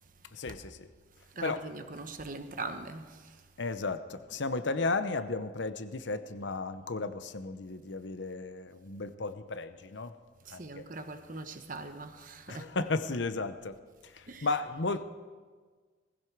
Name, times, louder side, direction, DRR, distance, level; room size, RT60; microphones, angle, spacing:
voice 1, 0.3-0.9 1.4-1.7 3.6-10.1 10.5-10.9 12.5-13.8 14.0-15.0, left 3 dB, 70° left, 0.8 m, -34 dB
voice 2, 1.3-3.4 10.4-12.7 14.3-14.5, right 3 dB, 45° right, 1.1 m, -41 dB
19.5 x 16.0 x 4.7 m
head